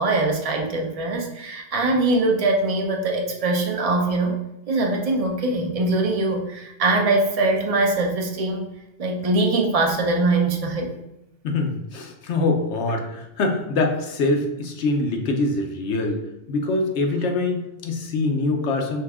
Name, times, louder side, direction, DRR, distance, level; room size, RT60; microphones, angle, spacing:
voice 1, 0.0-4.4 4.7-8.7 9.0-10.9, right 2 dB, 40° right, 2 dB, 0.6 m, -22 dB
voice 2, 11.4-16.2 16.5-19.0, left 2 dB, 85° left, 3 dB, 1.0 m, -24 dB
5.6 x 2.3 x 3.5 m, 0.89 s
omnidirectional pair, 1.2 m